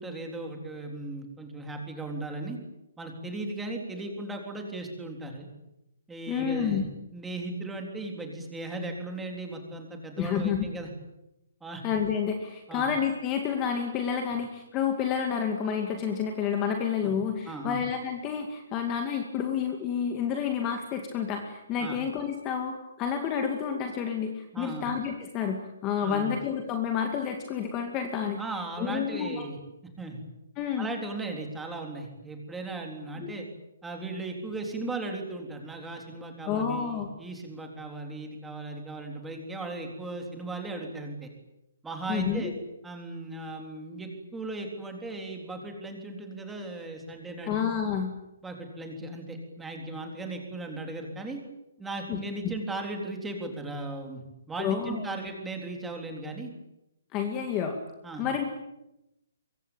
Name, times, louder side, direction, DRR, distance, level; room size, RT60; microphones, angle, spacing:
voice 1, 0.0-2.6 3.0-5.5 6.1-6.8 7.1-10.9 11.6-11.8 12.7-12.8 17.0-17.1 17.5-17.8 21.8-22.0 24.5-24.9 26.0-26.3 28.4-29.6 30.0-30.2 30.8-33.5 33.8-41.3 41.8-42.5 42.8-47.6 48.4-51.4 51.8-56.5 58.0-58.3, right 2 dB, 5° right, 2 dB, 3.8 m, -37 dB
voice 2, 6.3-6.9 10.2-10.7 11.8-28.4 28.8-29.5 30.6-30.9 33.2-33.3 36.5-37.1 42.1-42.5 47.5-48.1 52.1-52.2 52.4-52.5 54.6-55.0 57.1-57.8 58.2-58.4, left 7 dB, 20° left, 4 dB, 2.2 m, -29 dB
25.0 x 23.0 x 9.0 m, 0.90 s
hypercardioid pair, 170°, 0 cm